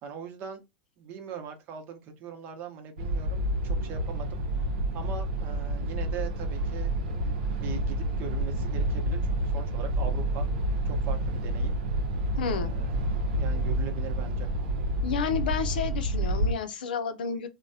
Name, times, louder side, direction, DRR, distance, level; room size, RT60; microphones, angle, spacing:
voice 1, 0.0-0.6 1.0-4.4 4.9-6.9 7.5-10.5 10.8-11.8 12.5-13.0 13.3-14.5, right 7 dB, 45° right, 0.8 m, -41 dB
sound 1, 3.0-16.5, right 1 dB, 80° right, 0.7 m, -29 dB
voice 2, 12.4-12.7 15.0-17.5, left 6 dB, 90° left, 0.6 m, -31 dB
3.2 x 2.1 x 2.6 m
supercardioid pair, 120°, 5 cm